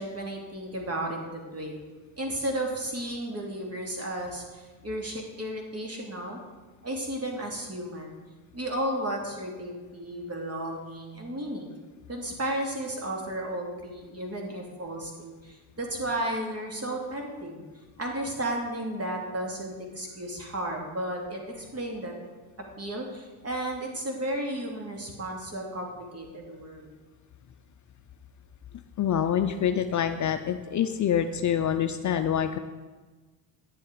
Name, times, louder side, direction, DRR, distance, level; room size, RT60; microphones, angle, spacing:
voice 1, 0.0-1.8 2.2-6.4 6.8-8.2 8.5-11.7 12.1-17.6 18.0-22.1 22.8-26.9, right 1 dB, 30° right, 1 dB, 2.6 m, -33 dB
voice 2, 29.0-32.6, left 9 dB, 40° left, 8 dB, 0.6 m, -26 dB
9.7 x 7.6 x 5.0 m, 1.3 s
supercardioid pair, 75°, 46 cm